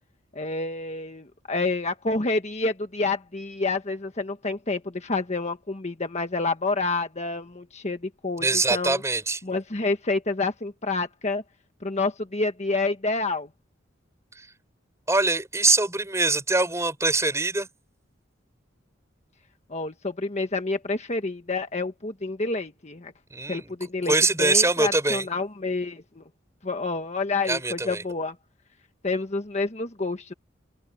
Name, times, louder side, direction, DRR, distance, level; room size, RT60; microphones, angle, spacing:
voice 1, 0.3-9.0 9.4-11.4 11.8-13.5 19.7-23.1 23.5-26.2 26.6-28.3 29.0-30.3, left 3 dB, 35° left, 1.4 m, -28 dB
voice 2, 8.4-9.4 14.4-14.5 15.1-17.7 23.3-23.7 24.1-25.3 27.5-28.0, right 3 dB, 15° right, 5.2 m, -23 dB
open air
head